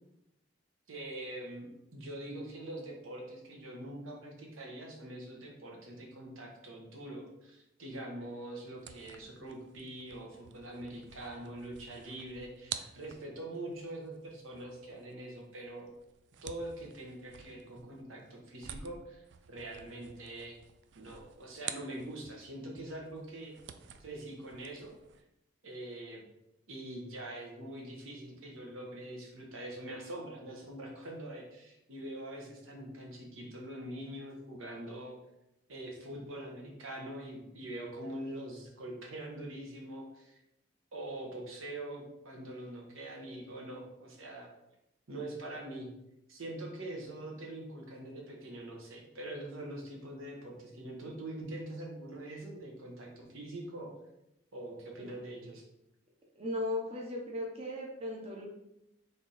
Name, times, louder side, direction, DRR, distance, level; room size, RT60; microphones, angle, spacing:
voice 1, 0.9-15.9 16.4-20.6 20.9-23.5 24.0-24.9 25.6-26.2 26.7-35.1 35.7-40.4 40.9-44.5 45.1-45.9 46.3-53.9 54.5-55.6, right 1 dB, 90° right, 0 dB, 1.1 m, -44 dB
sound 1, 8.7-22.5 22.8-25.2, right 9 dB, 60° right, 0.3 m, -49 dB
voice 2, 56.4-58.5, left 1 dB, 30° right, -1 dB, 0.7 m, -36 dB
3.5 x 3.3 x 4.1 m, 0.86 s
head